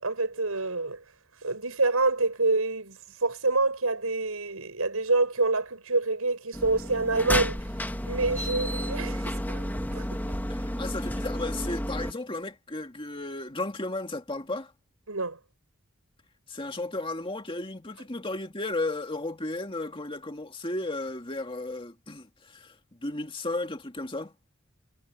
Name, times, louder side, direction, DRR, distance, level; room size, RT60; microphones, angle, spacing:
voice 1, 0.0-1.0 1.4-7.6 8.1-9.6 9.9-10.2 15.1-15.4, right 3 dB, 90° right, 6.4 m, -27 dB
sound 1, 6.5-12.1, equal, 10° left, 2.4 m, -31 dB
voice 2, 10.5-14.7 16.5-22.8 23.0-24.3, left 2 dB, 25° left, 2.2 m, -34 dB
head